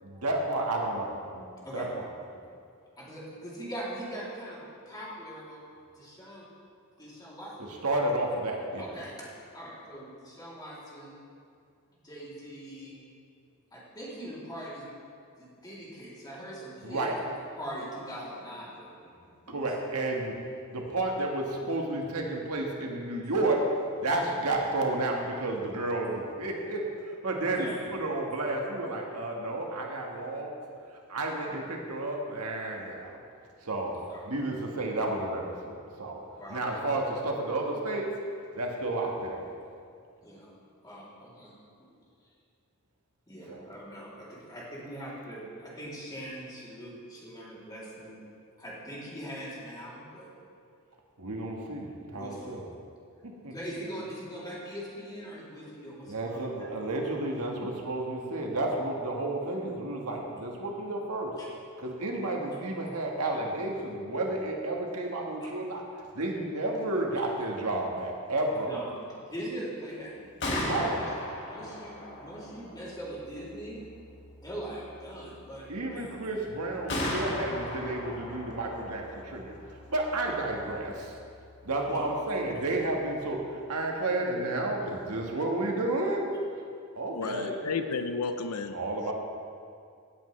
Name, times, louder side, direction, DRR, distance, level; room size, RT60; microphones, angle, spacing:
voice 1, 0.0-1.4 1.7-2.0 7.6-8.9 16.8-17.1 19.5-20.3 20.7-23.6 24.0-30.5 30.9-33.2 33.6-34.0 34.2-36.2 36.5-38.1 38.5-39.5 43.5-43.6 51.2-52.7 53.2-53.5 56.1-61.3 61.8-68.8 70.5-71.0 75.7-81.2 81.6-86.3 86.9-87.6 88.7-89.1, right 2 dB, 85° right, 0 dB, 1.5 m, -31 dB
voice 2, 3.0-5.6 5.9-6.5 7.0-7.8 8.8-9.3 9.5-11.1 11.9-13.0 13.7-14.8 15.4-17.0 17.3-18.9 19.4-19.7 27.5-27.8 34.1-34.2 36.4-36.6 40.2-40.5 40.8-41.5 41.8-41.9 42.2-42.3 43.3-48.2 48.6-50.3 52.1-52.6 53.5-56.7 61.4-61.5 68.6-68.9 69.2-70.1 70.5-71.0 71.4-73.8 74.4-75.7 75.9-76.1 81.9-82.0 87.1-87.5, equal, 20° left, -7 dB, 3.0 m, -41 dB
Gunshot gunfire, 70.2-84.0, left 1 dB, 55° left, 1.8 m, -39 dB
voice 3, 87.1-88.8, left 4 dB, 80° left, 8 dB, 0.6 m, -32 dB
17.0 x 8.1 x 3.2 m, 2.3 s
head